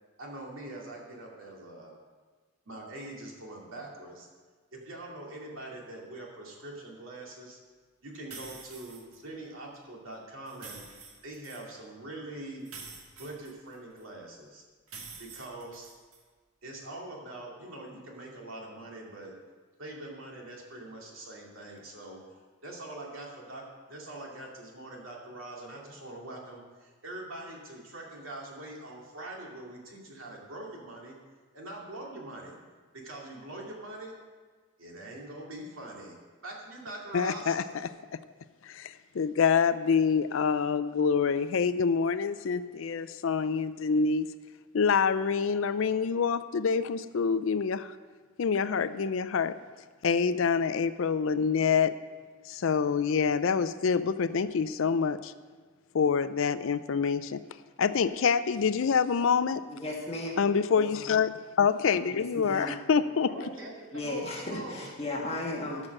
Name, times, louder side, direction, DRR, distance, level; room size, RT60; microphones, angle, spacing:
voice 1, 0.2-1.9 2.7-4.3 4.7-7.6 8.0-12.7 13.1-14.6 15.2-15.9 16.6-19.3 19.8-22.2 22.6-23.6 23.9-31.2 31.5-32.6 32.9-34.1 34.8-36.2 36.4-37.7 63.2-64.9, right 2 dB, 70° right, -2 dB, 2.5 m, -43 dB
sound 1, 8.3-9.2 10.5-11.7 12.7-14.0 14.9-16.2, right 4 dB, 90° right, 1.6 m, -47 dB
voice 2, 37.1-37.6 38.6-44.3 44.7-47.9 48.4-49.6 50.0-52.0 52.5-55.3 55.9-57.4 57.8-59.6 60.4-63.5, left 6 dB, 70° left, 13 dB, 0.4 m, -26 dB
voice 3, 59.7-60.4 60.8-60.9 62.1-62.7 63.9-65.9, left 2 dB, 30° left, -1 dB, 1.6 m, -35 dB
13.0 x 6.1 x 6.5 m, 1.5 s
head